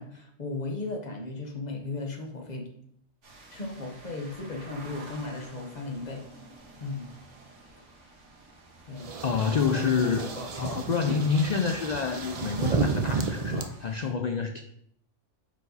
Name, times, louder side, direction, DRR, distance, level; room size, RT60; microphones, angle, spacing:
voice 1, 0.0-2.7 3.5-6.2 6.8-7.1 8.9-9.1, left 3 dB, 35° left, 1 dB, 1.2 m, -36 dB
sound 1, 3.2-14.1, right 2 dB, 75° right, 1.5 m, -50 dB
sound 2, 9.0-13.6, right 4 dB, 50° right, 0.4 m, -31 dB
voice 2, 9.2-14.6, left 5 dB, 70° left, 6 dB, 0.4 m, -28 dB
5.4 x 5.0 x 4.0 m, 0.68 s
omnidirectional pair, 1.2 m